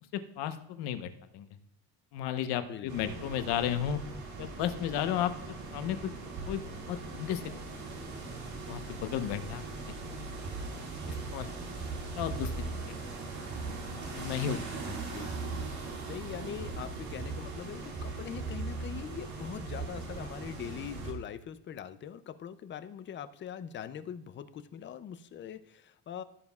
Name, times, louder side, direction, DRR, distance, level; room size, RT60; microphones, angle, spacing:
voice 1, 0.1-1.1 1.3-1.5 2.1-4.0 4.4-5.3 5.7-6.1 6.5-6.6 6.9-7.4 8.7-9.6 11.3-11.5 12.2-12.7 14.1-15.0, left 10 dB, 85° left, 9 dB, 1.0 m, -33 dB
voice 2, 2.6-3.2 15.0-15.7 16.1-26.2, left 9 dB, 30° left, 12 dB, 0.4 m, -42 dB
sound 1, 2.9-21.1, right 3 dB, 45° right, 2.0 m, -39 dB
15.0 x 7.4 x 2.3 m, 0.77 s
cardioid pair, 160°, 39 cm